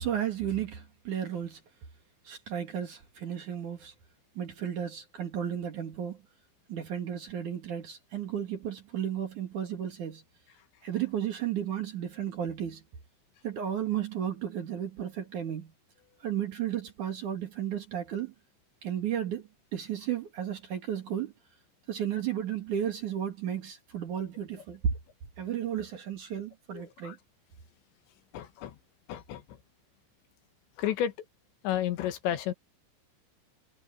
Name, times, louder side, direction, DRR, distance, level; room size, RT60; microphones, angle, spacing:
voice 1, 0.0-1.6 2.2-3.9 4.4-6.2 6.7-10.2 10.8-12.8 13.4-15.7 16.2-18.3 18.8-19.4 19.7-21.3 21.9-24.9 25.4-27.2, right 9 dB, 50° right, 2.9 m, -33 dB
voice 2, 26.7-27.2 28.3-28.8 29.1-29.6 30.8-31.1 31.6-32.5, left 11 dB, 80° left, 3.7 m, -32 dB
omnidirectional pair, 5.2 m